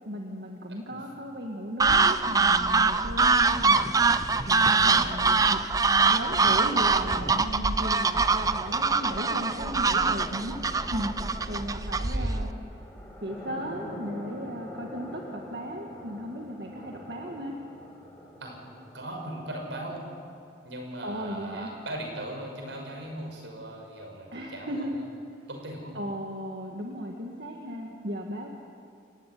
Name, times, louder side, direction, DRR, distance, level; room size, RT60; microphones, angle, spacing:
voice 1, 0.0-3.9 4.5-5.6 6.1-10.6 10.9-11.1 11.4-12.5 13.2-17.6 21.0-21.7 24.3-25.0 25.9-28.5, equal, 60° right, 0 dB, 2.0 m, -36 dB
voice 2, 0.7-1.0 4.8-5.3 12.1-12.3 16.8-17.0 18.4-18.6 18.9-20.0 20.6-25.0 25.5-26.0, right 1 dB, 85° right, 2 dB, 6.0 m, -39 dB
sound 1, 1.8-12.5, right 4 dB, 20° right, 0.5 m, -23 dB
sound 2, 7.6-20.0, left 1 dB, 10° left, 5.4 m, -46 dB
29.0 x 16.0 x 9.5 m, 2.4 s
head